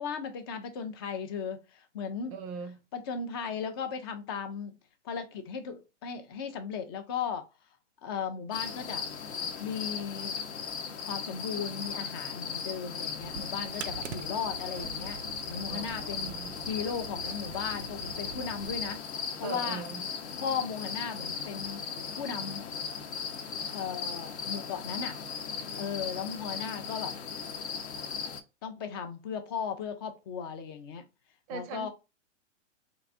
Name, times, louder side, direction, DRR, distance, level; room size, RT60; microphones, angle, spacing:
voice 1, 0.0-2.3 2.9-4.8 5.0-7.5 8.0-9.1 9.6-10.4 11.1-15.2 15.5-16.4 16.7-19.0 19.4-19.8 20.4-21.8 22.2-22.7 23.7-25.2 25.8-27.1 28.6-31.1 31.5-31.9, left 6 dB, 20° left, 0.3 m, -36 dB
voice 2, 2.3-2.8 15.7-16.5 19.4-20.0 31.5-31.9, right 6 dB, 30° right, 0.5 m, -40 dB
sound 1, 8.5-28.4, left 6 dB, 60° left, 0.8 m, -37 dB
sound 2, 13.1-19.0, right 9 dB, 85° right, 0.5 m, -45 dB
3.9 x 2.6 x 3.3 m
hypercardioid pair, 135°, 37 cm